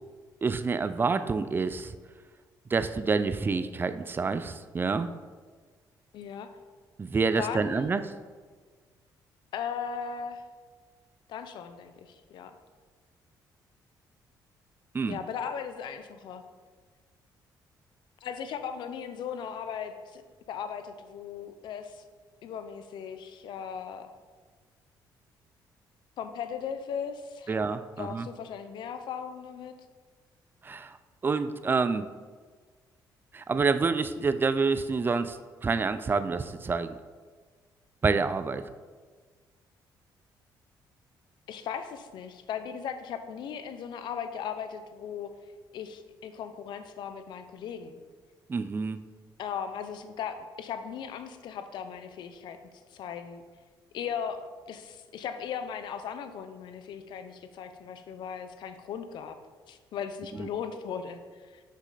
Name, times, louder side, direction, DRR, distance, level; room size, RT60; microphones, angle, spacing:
voice 1, 0.4-2.0 2.7-5.1 7.0-8.0 14.9-15.2 27.5-28.3 30.6-31.0 31.2-32.1 33.3-37.0 38.0-38.6 48.5-49.0 60.4-60.5, right 4 dB, 25° right, 12 dB, 0.4 m, -28 dB
voice 2, 6.1-6.5 7.4-7.9 9.5-10.4 11.3-12.5 15.1-16.4 18.2-20.2 20.5-22.1 22.4-24.1 26.2-27.5 28.0-29.7 41.5-45.3 45.7-48.0 49.4-52.6 52.9-53.4 53.9-59.4 59.7-61.6, left 7 dB, 70° left, 9 dB, 0.6 m, -37 dB
6.4 x 5.3 x 4.0 m, 1.5 s
cardioid pair, 95°, 8 cm